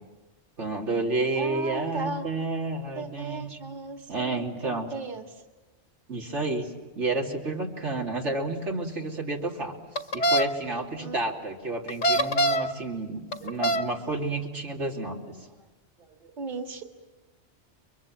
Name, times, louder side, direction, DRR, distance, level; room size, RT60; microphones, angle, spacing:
voice 1, 0.6-3.6 4.1-4.9 6.1-9.7 10.1-15.4, right 2 dB, 85° right, 0 dB, 3.2 m, -30 dB
voice 2, 1.3-2.3 3.0-5.4 11.0-11.2 13.2-13.6 16.1-16.8, right 3 dB, 40° right, 4 dB, 1.9 m, -37 dB
sound 1, 10.0-10.4 11.9-12.7 13.3-13.9, right 1 dB, 80° left, 1.6 m, -23 dB
30.0 x 23.5 x 7.7 m, 1.2 s
omnidirectional pair, 1.2 m